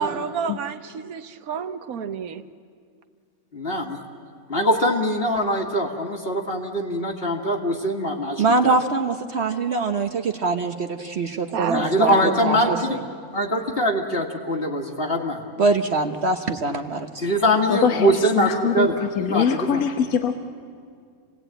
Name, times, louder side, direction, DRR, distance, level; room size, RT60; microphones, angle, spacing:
voice 1, 0.0-2.4 11.5-12.8, right 7 dB, 80° right, 11 dB, 1.4 m, -30 dB
voice 2, 3.5-4.0 4.5-8.7 11.7-13.0 13.3-15.4 17.2-19.8, equal, 40° left, 1 dB, 1.9 m, -23 dB
voice 3, 8.4-13.0 15.6-17.3, right 3 dB, 50° right, 6 dB, 1.1 m, -23 dB
voice 4, 17.7-20.4, left 7 dB, 75° left, 6 dB, 1.4 m, -23 dB
28.0 x 18.5 x 9.0 m, 2.2 s
omnidirectional pair, 1.5 m